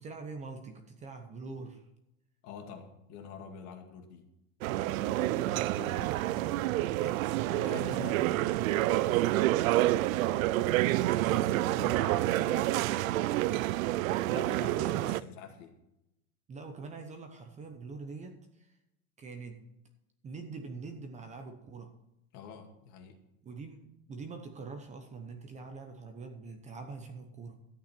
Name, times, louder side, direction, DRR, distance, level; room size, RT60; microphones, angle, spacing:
voice 1, 0.0-1.8 5.2-7.4 14.5-15.0 16.5-18.8 19.2-19.6 20.2-21.9 23.4-27.6, right 4 dB, 15° right, 5 dB, 0.9 m, -44 dB
voice 2, 2.4-4.3 5.0-6.1 7.5-10.5 11.1-13.7 14.2-15.7 22.3-23.2, left 7 dB, 45° left, 4 dB, 2.1 m, -47 dB
sound 1, 4.6-15.2, right 16 dB, 75° right, 0.6 m, -28 dB
13.5 x 8.9 x 4.4 m, 0.86 s
supercardioid pair, 155°, 41 cm